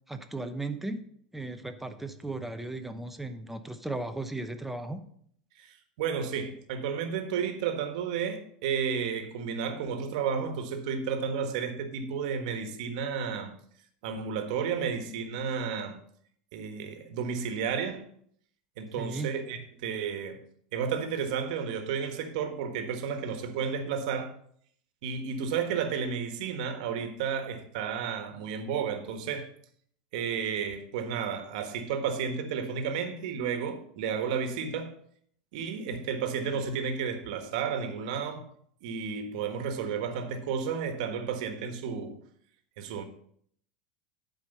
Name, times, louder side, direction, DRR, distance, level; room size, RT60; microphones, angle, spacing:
voice 1, 0.1-1.0 1.3-5.0 19.0-19.4, right 2 dB, 5° right, 0.9 m, -36 dB
voice 2, 5.6-13.5 14.0-16.0 16.5-18.1 18.8-20.4 20.7-24.3 25.0-29.5 30.1-35.0 35.5-38.5 38.8-42.2 42.8-43.0, right 6 dB, 70° right, 1.5 m, -32 dB
11.0 x 5.0 x 5.4 m
supercardioid pair, 115°, 4 cm